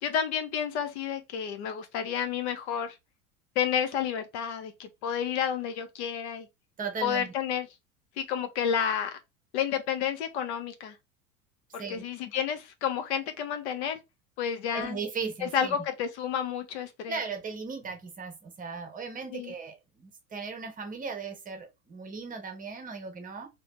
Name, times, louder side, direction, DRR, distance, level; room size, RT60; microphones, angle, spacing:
voice 1, 0.0-2.9 3.6-6.5 7.0-7.7 8.2-9.2 9.5-10.9 11.7-14.0 14.4-15.0 15.4-17.2 19.3-19.5, left 8 dB, 50° left, 0.8 m, -30 dB
voice 2, 6.8-7.3 11.8-12.0 14.7-15.8 17.1-23.5, right 5 dB, 20° right, 1.0 m, -37 dB
3.2 x 2.9 x 3.0 m
figure-of-eight pair, 80°, 42 cm